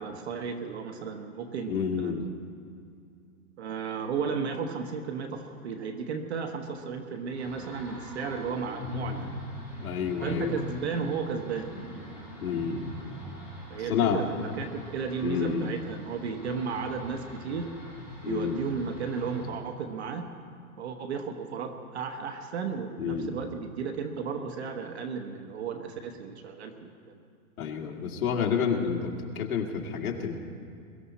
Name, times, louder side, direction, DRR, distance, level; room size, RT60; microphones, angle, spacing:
voice 1, 0.0-2.3 3.6-9.3 10.2-11.7 13.7-17.7 18.3-20.3 20.8-27.2, right 5 dB, 45° right, 5 dB, 1.1 m, -34 dB
voice 2, 1.7-2.2 9.8-10.6 12.4-12.9 13.9-14.2 15.2-15.8 18.2-18.6 23.0-23.4 27.6-30.4, left 6 dB, 70° left, 2 dB, 2.3 m, -29 dB
sound 1, 7.3-19.5, left 1 dB, 5° right, 4.3 m, -42 dB
22.5 x 13.5 x 4.2 m, 2.4 s
hypercardioid pair, 180°, 45 cm